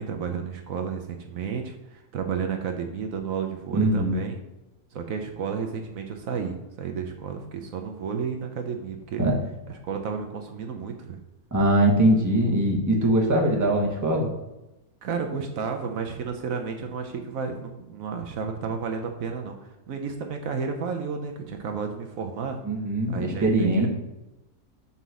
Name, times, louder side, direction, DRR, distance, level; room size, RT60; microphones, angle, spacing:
voice 1, 0.0-4.4 4.9-9.2 9.8-11.2 15.0-22.6 23.1-23.9, right 6 dB, 70° right, 4 dB, 1.1 m, -32 dB
voice 2, 3.7-4.2 9.2-9.3 11.5-14.3 22.6-23.9, right 1 dB, 15° right, -1 dB, 1.1 m, -21 dB
5.7 x 4.0 x 6.2 m, 0.97 s
omnidirectional pair, 1.5 m